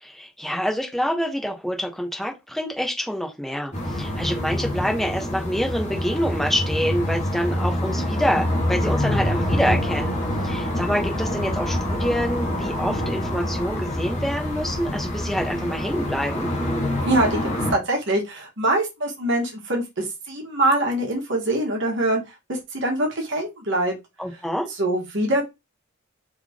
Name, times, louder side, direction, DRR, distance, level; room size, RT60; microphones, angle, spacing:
voice 1, 0.0-10.2 10.4-16.5 24.2-24.7, equal, ahead, 0.9 m, -26 dB
sound 1, 3.7-17.7, left 1 dB, 35° left, 1.4 m, -26 dB
voice 2, 17.0-17.4 17.7-22.2 22.5-23.9 24.8-25.5, right 1 dB, 60° right, 1.6 m, -23 dB
3.8 x 3.4 x 3.5 m
head